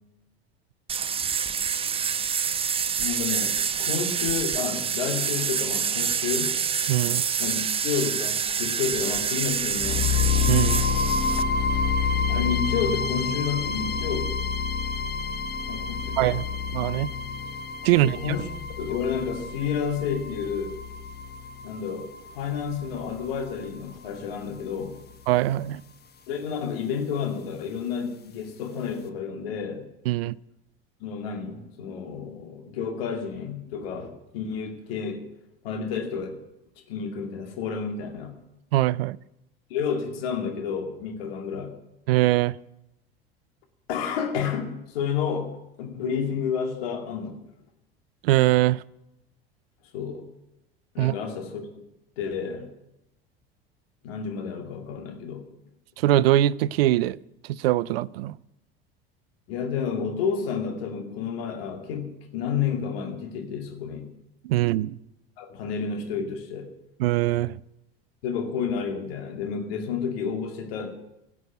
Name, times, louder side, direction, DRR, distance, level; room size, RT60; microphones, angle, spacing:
sound 1, 0.9-11.4, right 7 dB, 20° right, 0.5 m, -27 dB
voice 1, 3.0-6.6 7.4-10.1 12.3-14.3 15.7-16.4 17.9-18.5 18.8-20.8 21.6-22.1 22.3-25.0 26.3-29.9 31.0-35.2 35.6-36.4 36.9-38.4 39.7-41.8 43.9-45.5 45.8-47.4 49.9-50.3 50.9-51.6 52.2-52.7 54.0-55.4 59.5-64.1 65.4-66.7 68.2-71.0, left 6 dB, 70° left, 2.4 m, -30 dB
voice 2, 6.9-7.2 10.5-10.8 16.2-16.4 16.7-17.1 17.8-18.2 25.3-25.8 30.1-30.3 38.7-39.2 42.1-42.6 48.2-48.8 51.0-51.1 56.0-57.2 57.5-58.4 64.4-65.0 67.0-67.6, right 15 dB, 70° right, 0.4 m, -22 dB
sound 2, 9.8-23.8, left 5 dB, 30° left, 1.2 m, -28 dB
16.5 x 6.2 x 9.0 m
hypercardioid pair, 70°, 31 cm